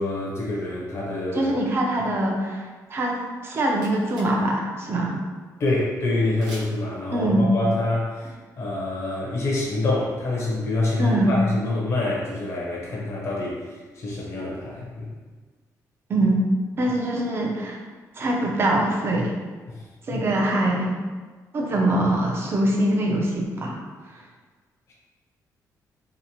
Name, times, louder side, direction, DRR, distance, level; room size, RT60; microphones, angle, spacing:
voice 1, 0.0-1.5 5.6-15.1 19.7-19.8 20.1-20.3, left 2 dB, 45° left, -5 dB, 0.6 m, -26 dB
voice 2, 1.3-3.2 3.4-5.2 7.1-7.5 11.0-11.3 16.1-16.4 16.8-17.8 18.2-19.3 20.1-20.9 21.5-23.8, right 1 dB, 35° right, -1 dB, 0.4 m, -23 dB
sound 1, 3.4-4.5 4.7-4.8 6.4-7.0, right 1 dB, 80° right, 0.8 m, -43 dB
2.8 x 2.1 x 2.6 m, 1.4 s
cardioid pair, 165°, 7 cm